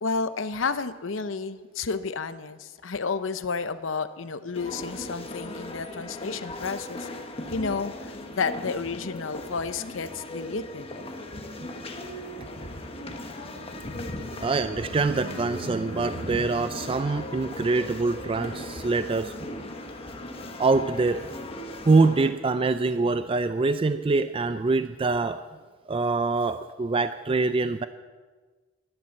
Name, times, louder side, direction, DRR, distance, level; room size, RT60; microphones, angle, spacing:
voice 1, 0.0-7.1 7.5-10.9, left 4 dB, 75° left, 13 dB, 0.8 m, -31 dB
sound 1, 4.5-22.3, left 1 dB, 30° left, 1.3 m, -38 dB
sound 2, 12.1-21.4, right 3 dB, 75° right, 0.7 m, -45 dB
voice 2, 14.4-19.3 20.6-21.3 21.9-25.4 25.9-27.9, right 3 dB, 30° right, 11 dB, 0.4 m, -24 dB
14.5 x 11.5 x 7.1 m, 1.4 s
head